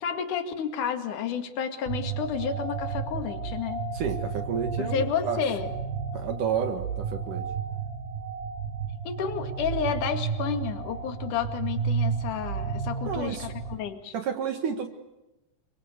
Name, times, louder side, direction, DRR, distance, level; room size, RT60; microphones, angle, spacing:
voice 1, 0.0-3.8 4.8-5.7 9.0-14.1, left 7 dB, 55° left, 7 dB, 3.4 m, -31 dB
sound 1, 1.9-13.8, right 6 dB, 85° right, 4.3 m, -32 dB
voice 2, 3.9-5.4 6.1-7.4 12.9-13.5 14.1-14.9, right 7 dB, 60° right, 6 dB, 3.0 m, -31 dB
29.5 x 24.0 x 8.1 m, 0.97 s
omnidirectional pair, 4.4 m